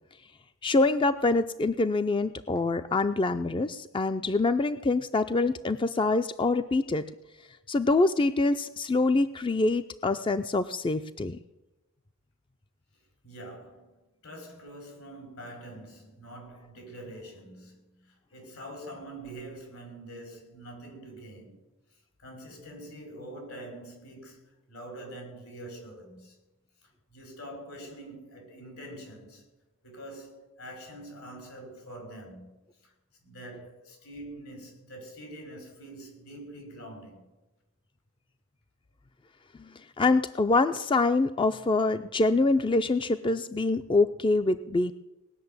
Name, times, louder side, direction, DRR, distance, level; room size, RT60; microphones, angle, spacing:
voice 1, 0.6-7.1 7.7-11.4 40.0-44.9, left 3 dB, 25° left, 0.4 m, -25 dB
voice 2, 13.2-14.0 14.2-21.6 22.2-26.4 26.8-29.4 29.8-32.5 32.8-32.9 33.2-37.3, right 1 dB, 80° left, 5.9 m, -45 dB
19.0 x 6.7 x 9.5 m
head